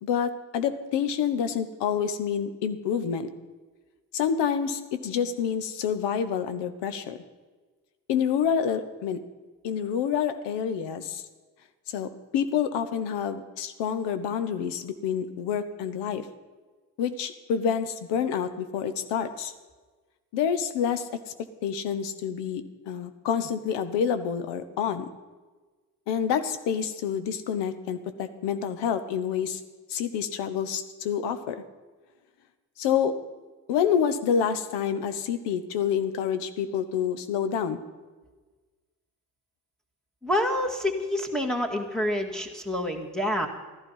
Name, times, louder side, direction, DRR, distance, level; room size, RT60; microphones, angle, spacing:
voice 1, 0.0-3.3 4.1-7.2 8.1-9.2 9.6-11.2 11.9-16.3 17.0-19.5 20.3-21.2 21.6-25.1 26.1-29.6 29.9-31.6 32.8-33.2 33.7-37.8, left 7 dB, 85° left, 11 dB, 1.1 m, -28 dB
voice 2, 40.2-43.5, left 1 dB, ahead, 3 dB, 2.0 m, -27 dB
14.0 x 11.5 x 5.5 m, 1.3 s
supercardioid pair, 70°, 41 cm